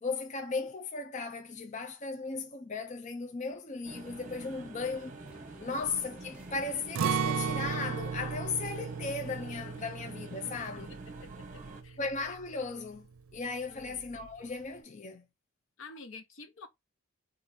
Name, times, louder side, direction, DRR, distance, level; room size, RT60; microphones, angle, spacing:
voice 1, 0.0-5.1 5.6-10.9 12.0-13.1 13.3-15.2, left 4 dB, 35° left, 0.5 m, -36 dB
sound 1, 3.8-11.8, right 2 dB, 40° right, 1.0 m, -47 dB
sound 2, 5.2-12.7, right 1 dB, 5° right, 0.8 m, -57 dB
Acoustic guitar, 7.0-12.9 13.2-13.3 13.8-14.3, right 6 dB, 80° right, 0.5 m, -35 dB
voice 2, 10.4-12.0 13.7-14.0 15.8-16.7, left 3 dB, 70° left, 0.8 m, -50 dB
4.3 x 2.5 x 4.1 m
head